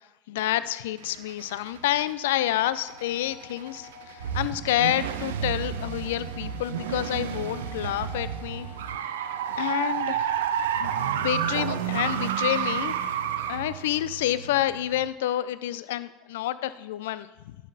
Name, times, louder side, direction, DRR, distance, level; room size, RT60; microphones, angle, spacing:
voice 1, 0.3-8.7 9.5-10.4 10.8-13.0 13.4-17.6, left 13 dB, 70° left, 15 dB, 0.3 m, -28 dB
sound 1, 1.0-2.1 2.5-15.1, right 9 dB, 75° right, 0.6 m, -31 dB
sound 2, 2.8-9.9, left 5 dB, 40° left, 1.6 m, -47 dB
11.0 x 6.3 x 4.0 m, 1.0 s
hypercardioid pair, 75°, 0 cm